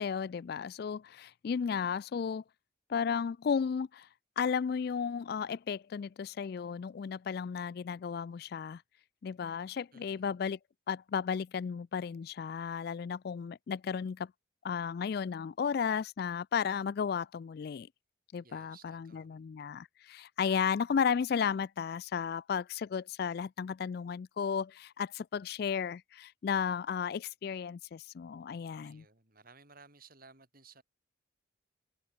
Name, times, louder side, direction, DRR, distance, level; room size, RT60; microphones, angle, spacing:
voice 1, 0.0-2.4 2.9-4.1 4.4-8.8 9.2-10.6 10.9-14.3 14.6-17.9 18.3-29.0, left 6 dB, 50° left, 0.3 m, -34 dB
voice 2, 9.9-10.3 18.4-19.4 28.8-30.8, right 4 dB, 45° right, 5.9 m, -58 dB
head